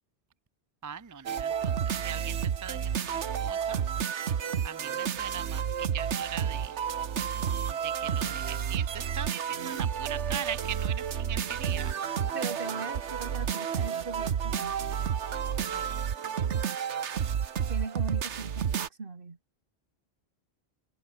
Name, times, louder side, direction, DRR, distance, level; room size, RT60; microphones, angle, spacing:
voice 1, 0.8-3.9 4.6-6.8 7.7-11.9 15.6-15.9, right 9 dB, 25° right, 0.4 m, -40 dB
sound 1, 1.3-18.9, right 8 dB, 80° right, 1.3 m, -31 dB
voice 2, 12.3-15.0 17.7-19.4, right 4 dB, 50° right, 2.1 m, -39 dB
omnidirectional pair, 1.2 m